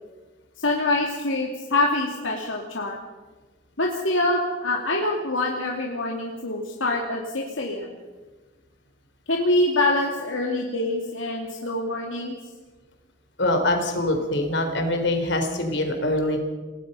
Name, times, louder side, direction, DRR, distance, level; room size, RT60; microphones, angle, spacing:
voice 1, 0.6-3.0 3.8-8.0 9.3-12.4, left 2 dB, 80° left, 0 dB, 2.6 m, -25 dB
voice 2, 13.4-16.4, left 1 dB, 65° left, 5 dB, 4.0 m, -24 dB
28.5 x 18.5 x 5.6 m, 1.3 s
head